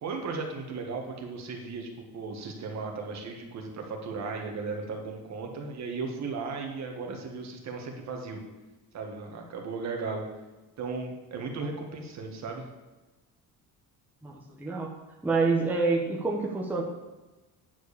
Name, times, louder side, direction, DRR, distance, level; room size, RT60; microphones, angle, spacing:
voice 1, 0.0-8.4 8.9-10.2 10.8-12.6, right 4 dB, 50° right, 2 dB, 1.6 m, -36 dB
voice 2, 14.2-14.9 15.2-16.8, right 3 dB, 5° right, -2 dB, 1.0 m, -27 dB
9.4 x 4.7 x 6.7 m, 1.1 s
cardioid pair, 160°, 36 cm